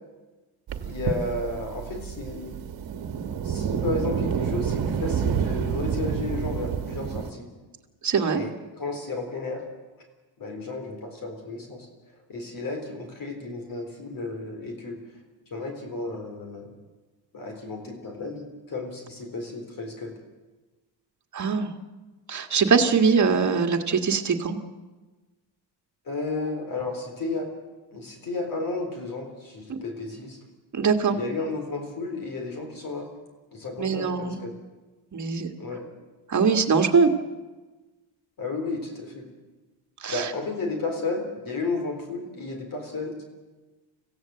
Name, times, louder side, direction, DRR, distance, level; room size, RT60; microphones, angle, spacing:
sound 1, 0.7-7.3, right 7 dB, 55° right, 1.5 m, -29 dB
voice 1, 0.8-2.5 3.4-7.5 8.3-9.7 10.4-11.9 12.3-15.0 15.5-16.7 17.3-20.1 26.1-27.5 27.9-30.4 31.1-33.1 33.5-34.5 35.6-35.9 38.4-39.3 40.1-43.2, left 3 dB, 50° left, 4 dB, 4.0 m, -33 dB
voice 2, 8.0-8.4 21.3-21.7 22.3-24.6 29.7-29.8 30.7-31.2 33.8-34.4 35.1-35.5 36.3-37.1 40.0-40.3, right 5 dB, 40° right, 5 dB, 1.8 m, -22 dB
25.0 x 15.5 x 7.8 m, 1.2 s
cardioid pair, 130°, 44 cm